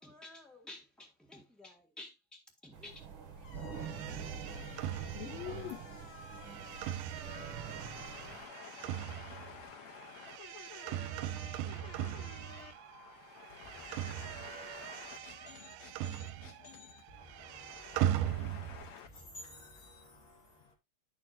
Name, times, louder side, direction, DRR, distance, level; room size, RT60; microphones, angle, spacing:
voice 1, 0.0-3.0, left 2 dB, ahead, 0.5 m, -52 dB
sound 1, 2.7-8.4, right 6 dB, 50° right, 1.9 m, -45 dB
sound 2, 3.4-10.3, left 4 dB, 65° left, 1.0 m, -55 dB
sound 3, 3.8-13.1 13.3-16.8 17.0-18.9, right 12 dB, 85° right, 2.1 m, -39 dB
voice 2, 5.1-5.8 7.2-17.0 17.3-19.1, left 9 dB, 90° left, 1.5 m, -50 dB
voice 3, 11.7-16.4 17.1-20.8, left 2 dB, 40° left, 3.3 m, -56 dB
10.0 x 6.4 x 2.5 m
omnidirectional pair, 3.8 m